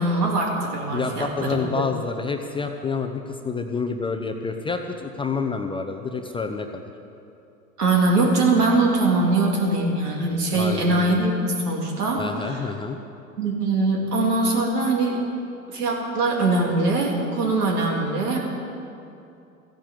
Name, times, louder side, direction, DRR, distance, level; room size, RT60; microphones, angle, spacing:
voice 1, 0.0-1.8 7.8-12.6 13.4-15.2 15.7-18.4, right 2 dB, 75° right, 0 dB, 3.3 m, -22 dB
voice 2, 0.9-6.8 10.5-11.3 12.2-13.0, left 4 dB, 10° left, 4 dB, 0.6 m, -28 dB
14.5 x 10.5 x 7.5 m, 2.6 s
hypercardioid pair, 95°, 47 cm